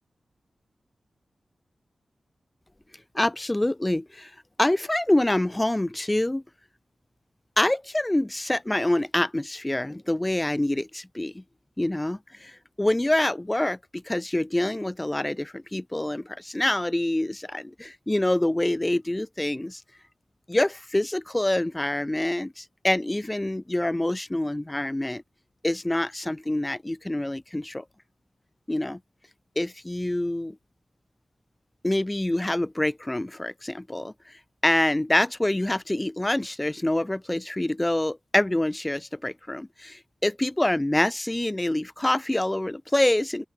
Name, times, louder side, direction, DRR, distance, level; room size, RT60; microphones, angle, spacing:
voice 1, 3.1-4.3 4.6-6.4 7.6-11.4 11.8-19.8 20.5-25.2 25.6-27.8 28.7-29.0 29.6-30.6 31.8-34.1 34.6-43.5, left 1 dB, 15° left, 0.5 m, -26 dB
open air
wide cardioid pair, 130°, 0 cm